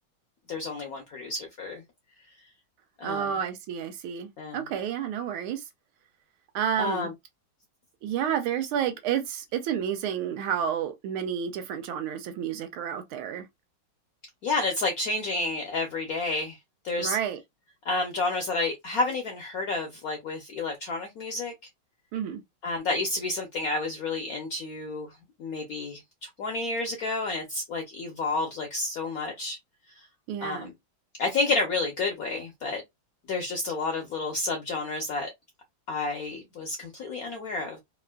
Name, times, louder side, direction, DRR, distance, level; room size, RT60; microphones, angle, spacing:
voice 1, 0.5-1.8 3.0-3.3 4.4-4.6 6.8-7.1 14.4-16.6 16.8-17.2 17.8-21.5 22.6-25.1 25.4-29.6 30.4-30.7 31.2-32.8 33.3-35.3 35.9-37.8, left 3 dB, 70° left, 0.8 m, -30 dB
voice 2, 3.0-5.6 6.5-7.1 8.0-13.5 17.0-17.4 22.1-22.4 30.3-30.7, right 8 dB, 80° right, 1.5 m, -30 dB
3.5 x 2.5 x 2.2 m
omnidirectional pair, 2.3 m